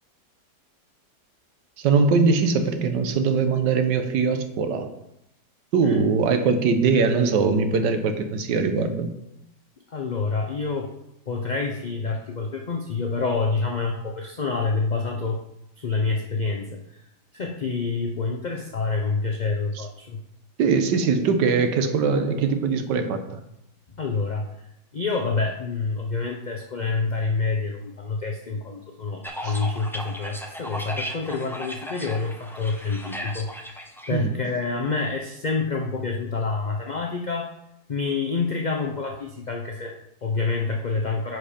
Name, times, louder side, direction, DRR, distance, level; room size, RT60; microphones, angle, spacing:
voice 1, 1.8-4.9 5.7-9.1 20.6-23.4 29.4-29.6 34.1-34.4, right 5 dB, 85° right, 7 dB, 1.6 m, -22 dB
voice 2, 9.9-10.9 11.3-15.4 15.8-17.0 17.3-20.2 24.0-24.5 24.9-37.5 37.9-41.4, left 4 dB, 45° left, 2 dB, 0.5 m, -27 dB
sound 1, 29.2-34.1, equal, ahead, 0.5 m, -36 dB
10.0 x 5.0 x 5.1 m, 0.83 s
omnidirectional pair, 1.8 m